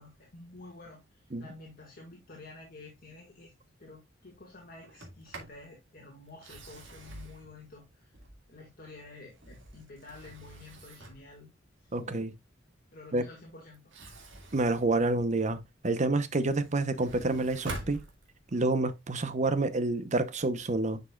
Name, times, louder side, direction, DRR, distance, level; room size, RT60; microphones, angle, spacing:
voice 1, 0.0-3.5 3.8-8.1 8.5-11.5 11.8-12.1 12.9-13.8, left 3 dB, 50° left, 1.8 m, -50 dB
Sliding door, 4.8-5.6 6.3-8.6 9.2-11.3 13.7-15.7 16.1-18.6, right 2 dB, 70° right, 2.1 m, -46 dB
voice 2, 11.9-12.3 13.1-13.2 14.5-18.0 18.5-21.0, right 2 dB, 40° right, 0.8 m, -28 dB
10.0 x 5.4 x 2.3 m
head